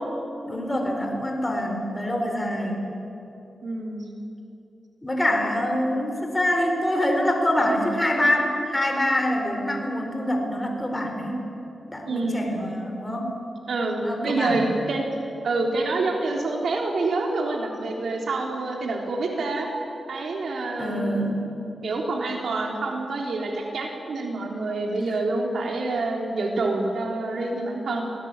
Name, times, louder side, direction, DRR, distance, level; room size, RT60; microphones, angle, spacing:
voice 1, 0.5-2.9 5.0-11.4 11.9-13.3 14.0-14.7 20.8-21.4, left 1 dB, 15° left, 2 dB, 4.3 m, -25 dB
voice 2, 3.6-4.1 12.0-12.5 13.7-15.0 15.4-19.7 20.1-21.3 21.8-28.1, right 2 dB, 75° right, 1 dB, 3.5 m, -27 dB
26.5 x 18.0 x 8.9 m, 2.8 s
cardioid pair, 70°, 0 cm